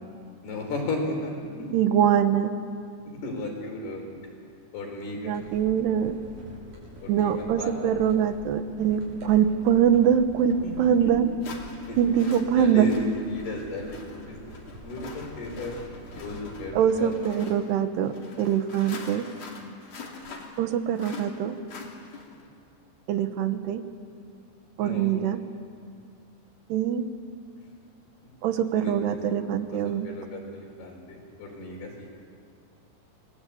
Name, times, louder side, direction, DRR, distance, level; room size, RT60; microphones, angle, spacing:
voice 1, 0.4-1.7 3.1-4.1 4.7-5.4 7.0-7.9 10.6-11.1 11.9-12.1 12.5-14.4 14.8-15.8 16.2-17.4 24.8-25.1 28.8-29.2 29.7-32.2, left 2 dB, 75° left, 1 dB, 6.6 m, -35 dB
voice 2, 1.7-2.5 5.2-6.2 7.1-11.2 12.0-12.9 16.8-19.2 20.6-21.6 23.1-23.8 24.8-25.4 26.7-27.1 28.4-30.1, right 9 dB, 85° right, 9 dB, 3.4 m, -23 dB
sound 1, 5.3-16.9, left 1 dB, 50° right, 8.3 m, -45 dB
sound 2, 10.5-10.6 11.4-22.5, left 4 dB, 45° left, 3.4 m, -44 dB
28.5 x 21.5 x 8.6 m, 2.3 s
omnidirectional pair, 4.6 m